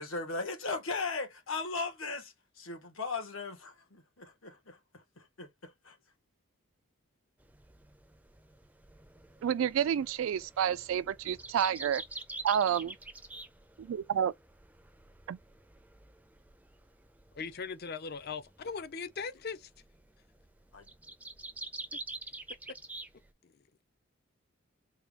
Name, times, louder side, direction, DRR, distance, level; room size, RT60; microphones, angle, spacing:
voice 1, 0.0-6.0 20.7-20.8, left 3 dB, 75° left, 1.4 m, -38 dB
sound 1, 7.4-23.3, right 2 dB, 5° right, 0.5 m, -47 dB
voice 2, 9.4-12.0 12.4-12.9 13.8-14.3 15.3-15.4, right 9 dB, 75° right, 0.3 m, -29 dB
voice 3, 17.3-19.7 21.9-22.0 23.4-23.6, left 5 dB, 50° left, 0.5 m, -39 dB
4.4 x 2.3 x 3.4 m
head